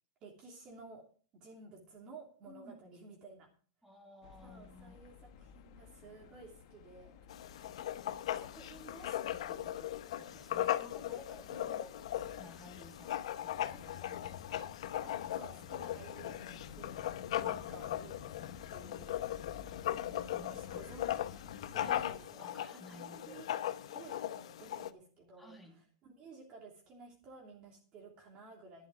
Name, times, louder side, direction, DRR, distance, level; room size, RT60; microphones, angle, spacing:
voice 1, 0.2-1.0 1.3-3.5 4.4-7.2 11.5-11.9 15.0-19.2 20.5-21.3 21.6-23.5 23.9-25.5 26.0-28.9, right 3 dB, 30° right, -1 dB, 3.1 m, -54 dB
voice 2, 3.8-5.0 8.0-14.8 17.3-17.6 20.3-20.8 21.8-22.0 22.4-23.4 25.4-25.8, left 1 dB, ahead, 2 dB, 2.2 m, -55 dB
sound 1, 4.2-22.2, left 8 dB, 50° left, 1.4 m, -53 dB
Writing, 7.3-24.9, left 12 dB, 75° left, 0.9 m, -39 dB
11.5 x 11.0 x 4.9 m, 0.42 s
supercardioid pair, 160°, 3 cm